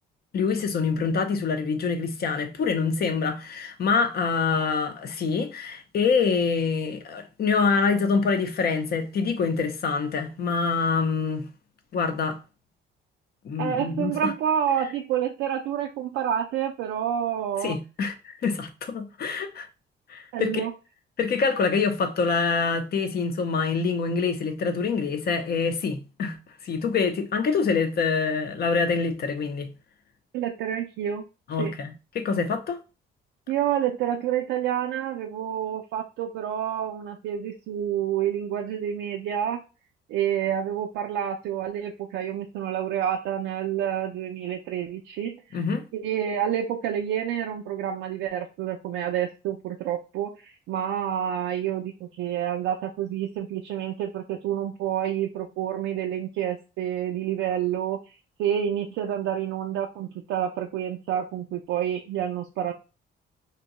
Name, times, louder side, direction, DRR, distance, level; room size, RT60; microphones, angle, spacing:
voice 1, 0.3-11.5 11.9-12.4 13.4-14.3 17.6-19.7 20.1-20.6 21.2-26.4 26.6-29.7 31.5-32.8 45.5-45.9, left 5 dB, 55° left, 0.7 m, -25 dB
voice 2, 13.6-17.8 20.3-20.7 30.3-31.2 31.6-31.7 33.5-39.6 40.1-45.4 45.9-62.7, right 10 dB, 90° right, 0.4 m, -28 dB
2.7 x 2.2 x 4.0 m
cardioid pair, 90°, 20 cm